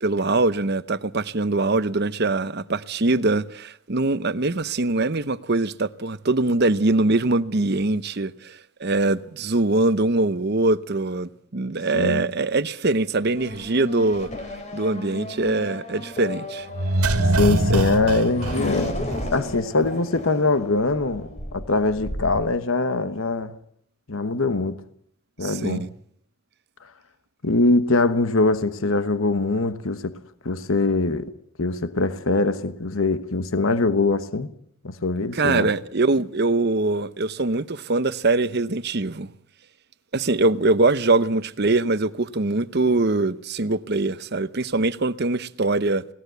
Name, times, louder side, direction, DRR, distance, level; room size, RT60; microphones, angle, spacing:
voice 1, 0.0-14.3 14.7-16.7 17.7-17.8 25.4-25.9 35.3-39.3 40.1-46.0, right 2 dB, 45° right, 0.8 m, -23 dB
Race car auto racing / Accelerating revving vroom, 13.4-22.4, left 1 dB, 30° left, 3.4 m, -34 dB
sound 1, 16.7-19.6 19.8-19.9, right 1 dB, 85° right, 1.9 m, -23 dB
voice 2, 17.4-19.0 19.3-23.5 24.1-24.8 25.4-25.9 27.4-30.2 30.4-31.3 31.6-34.5 34.8-35.7, left 3 dB, 65° left, 1.2 m, -22 dB
22.0 x 18.5 x 8.0 m
head